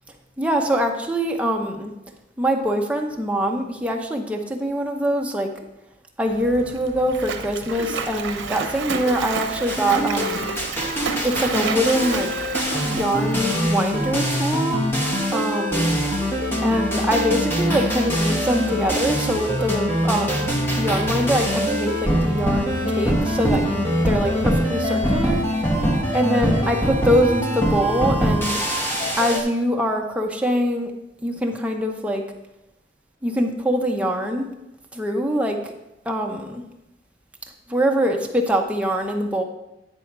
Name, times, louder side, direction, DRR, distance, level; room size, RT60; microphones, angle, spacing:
voice 1, 0.4-1.9 2.4-5.5 6.2-10.5 11.2-12.3 12.8-14.8 15.3-15.9 16.6-25.4 26.1-28.6 29.2-30.9 31.2-32.2 33.2-34.5 34.9-35.6 36.1-36.6 37.7-39.4, equal, 5° right, 1 dB, 0.8 m, -23 dB
Splash splatter, 6.3-14.2, right 5 dB, 80° right, 0.8 m, -31 dB
sound 1, 9.7-29.4, equal, 10° left, 1.2 m, -23 dB
9.7 x 4.2 x 5.9 m, 0.90 s
head